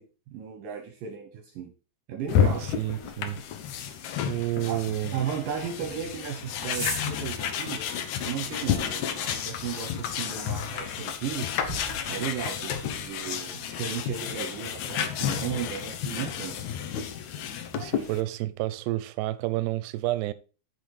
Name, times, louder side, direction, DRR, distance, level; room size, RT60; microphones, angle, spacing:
voice 1, 0.0-1.7 2.1-2.6 4.6-4.8 5.1-7.8 8.3-11.5 12.1-16.6, right 8 dB, 70° right, 2.2 m, -35 dB
sound 1, 2.2-13.2, equal, 15° left, 0.7 m, -43 dB
sound 2, 2.3-18.2, left 8 dB, 85° left, 1.6 m, -31 dB
voice 2, 2.5-3.4 4.2-5.2 17.7-20.3, right 16 dB, 90° right, 2.7 m, -30 dB
9.0 x 5.5 x 4.7 m
omnidirectional pair, 4.7 m